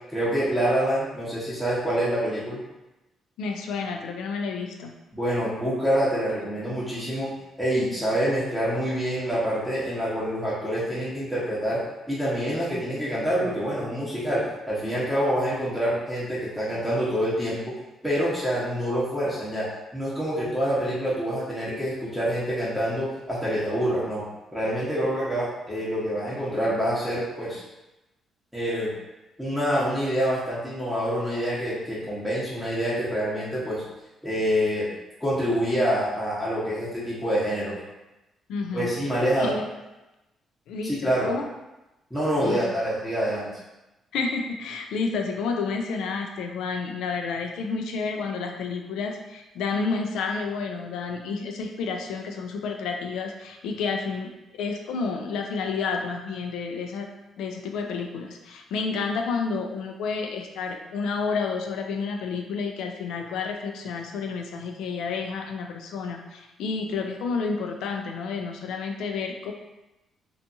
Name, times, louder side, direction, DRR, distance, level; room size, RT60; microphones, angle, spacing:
voice 1, 0.1-2.6 5.1-7.3 7.6-11.8 12.1-14.4 14.7-17.6 18.0-19.7 19.9-24.2 24.5-27.6 28.5-28.9 29.4-33.8 34.2-34.9 35.2-37.8 38.7-39.5 40.8-41.3 42.1-43.5, equal, ahead, -9 dB, 0.9 m, -26 dB
voice 2, 3.4-4.9 38.5-38.9 39.4-39.7 40.7-41.5 42.4-42.8 44.1-57.1 57.4-69.5, left 4 dB, 85° left, 4 dB, 0.3 m, -30 dB
2.6 x 2.3 x 2.6 m, 0.99 s
cardioid pair, 90°, 0 cm